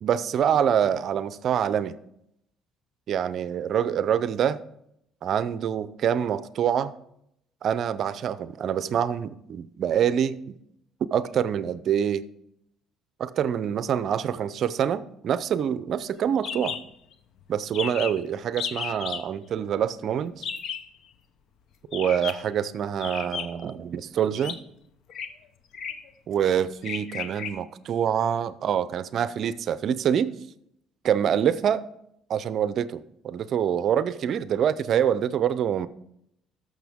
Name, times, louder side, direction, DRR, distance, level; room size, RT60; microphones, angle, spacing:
voice 1, 0.0-1.9 3.1-4.6 5.2-6.9 7.6-10.5 11.1-12.3 13.2-16.8 17.5-20.4 21.9-24.6 26.3-30.3 31.0-31.8 32.3-35.9, right 9 dB, 60° right, 0.5 m, -25 dB
sound 1, 16.4-16.8 17.1-17.2 17.4-17.5 17.7-18.2 18.6-19.2 20.4-20.9 21.9-22.5 23.0-23.7 24.4-24.6 25.1-25.3 25.7-26.1 26.8-27.5, left 7 dB, 65° left, 0.8 m, -33 dB
13.0 x 6.4 x 3.5 m
supercardioid pair, 90°, 0 cm